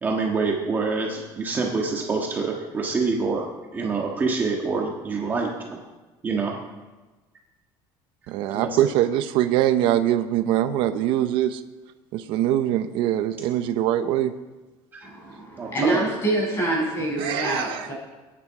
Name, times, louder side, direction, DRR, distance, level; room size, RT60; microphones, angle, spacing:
voice 1, 0.0-3.5 3.7-5.8 6.2-6.6 8.5-8.8 14.9-15.1 15.6-16.0, right 4 dB, 20° right, -1 dB, 1.5 m, -26 dB
voice 2, 8.3-11.6 12.1-14.3 17.2-17.9, right 12 dB, 60° right, 10 dB, 0.7 m, -23 dB
voice 3, 15.0-17.9, right 2 dB, 30° left, -3 dB, 6.8 m, -26 dB
22.5 x 10.0 x 4.8 m, 1.2 s
cardioid pair, 175°, 10 cm